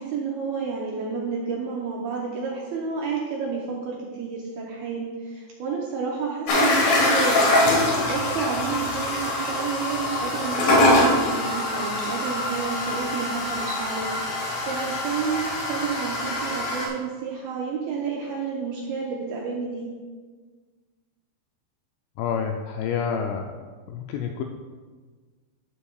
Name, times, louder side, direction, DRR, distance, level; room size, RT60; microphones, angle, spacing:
voice 1, 0.0-14.1 14.6-19.9, right 5 dB, 80° right, -3 dB, 2.1 m, -30 dB
sound 1, 6.5-16.9, left 1 dB, 60° left, 2.8 m, -23 dB
voice 2, 22.2-23.6 23.9-24.4, left 7 dB, 85° left, 3 dB, 2.5 m, -28 dB
12.5 x 7.0 x 2.3 m, 1.4 s
omnidirectional pair, 5.3 m